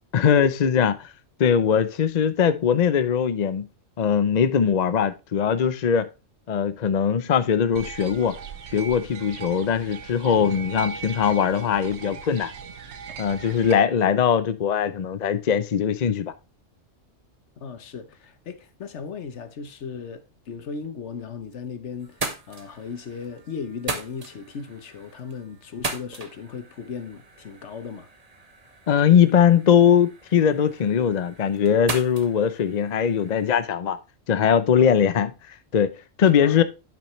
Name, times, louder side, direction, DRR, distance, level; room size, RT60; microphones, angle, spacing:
voice 1, 0.1-1.1 1.4-3.7 4.0-6.1 6.5-8.4 8.7-12.5 13.2-16.3 28.9-34.0 34.3-35.3 35.7-36.6, left 8 dB, 45° left, 0.6 m, -21 dB
sound 1, 7.8-13.7, right 7 dB, 60° right, 1.1 m, -38 dB
voice 2, 17.6-28.1 34.8-34.9 36.4-36.6, left 6 dB, 65° left, 1.2 m, -37 dB
sound 2, 21.1-21.7 22.0-33.6, right 3 dB, 30° right, 1.2 m, -38 dB
10.5 x 6.0 x 3.1 m
omnidirectional pair, 1.3 m